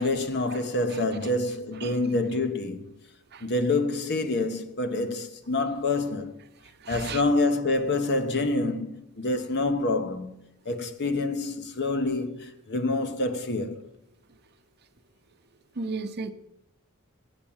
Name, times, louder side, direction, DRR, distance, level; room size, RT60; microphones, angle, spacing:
voice 1, 0.0-2.9 3.4-6.3 6.9-10.3 10.6-13.8, left 2 dB, 50° left, 0.9 m, -27 dB
voice 2, 6.8-7.2 15.8-16.3, right 4 dB, 50° right, 0.7 m, -33 dB
8.9 x 7.3 x 8.7 m
head